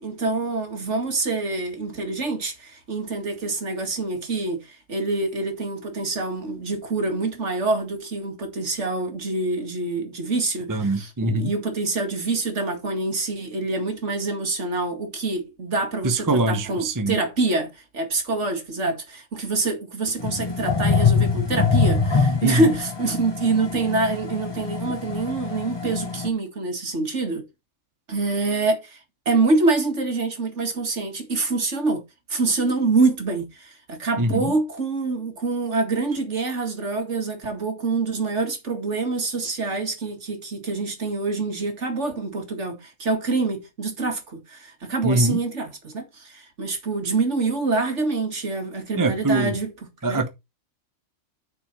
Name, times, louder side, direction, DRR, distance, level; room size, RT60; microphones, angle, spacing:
voice 1, 0.0-27.5 28.1-29.0 29.3-32.0 32.3-49.7 50.0-50.3, right 3 dB, 55° right, 2.4 m, -26 dB
voice 2, 10.7-11.5 16.0-17.2 22.4-22.7 34.2-34.5 45.0-45.4 49.0-49.6 50.0-50.3, right 2 dB, 15° right, 0.7 m, -23 dB
sound 1, 20.2-26.3, left 5 dB, 25° left, 0.8 m, -24 dB
8.7 x 6.1 x 4.0 m
omnidirectional pair, 1.4 m